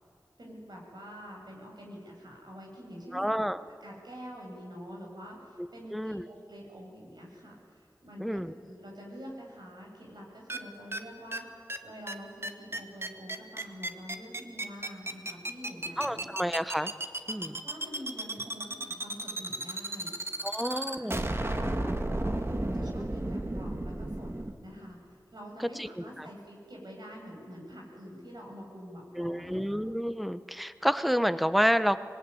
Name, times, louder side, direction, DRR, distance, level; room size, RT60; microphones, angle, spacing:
voice 1, 0.4-3.4 3.8-16.3 17.3-21.1 21.4-24.3 24.6-29.8, equal, 75° right, -1 dB, 7.8 m, -46 dB
voice 2, 3.1-3.6 5.9-6.3 8.2-8.5 16.0-16.9 17.3-17.6 20.4-21.2 25.8-26.3 29.2-32.0, equal, ahead, 12 dB, 1.1 m, -29 dB
sound 1, 10.5-10.6 10.9-11.0 11.3-11.4 11.7-11.8 12.1-12.2 12.4-24.5, right 1 dB, 35° right, 2.0 m, -33 dB
25.5 x 20.0 x 9.9 m, 2.4 s
wide cardioid pair, 45°, 7 cm